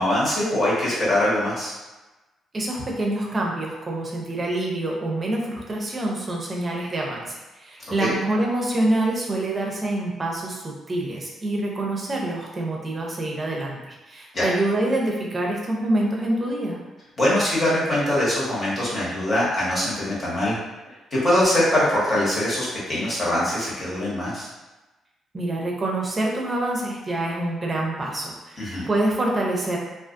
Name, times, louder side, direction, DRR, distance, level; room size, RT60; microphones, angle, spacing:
voice 1, 0.0-1.7 8.0-8.1 14.3-14.5 17.2-20.5 21.1-24.5 28.6-28.9, left 1 dB, 40° left, -8 dB, 1.3 m, -22 dB
voice 2, 2.5-7.2 7.6-16.8 25.3-29.8, right 1 dB, 30° right, -2 dB, 0.6 m, -26 dB
2.4 x 2.4 x 2.5 m, 1.1 s
cardioid pair, 90°, 0 cm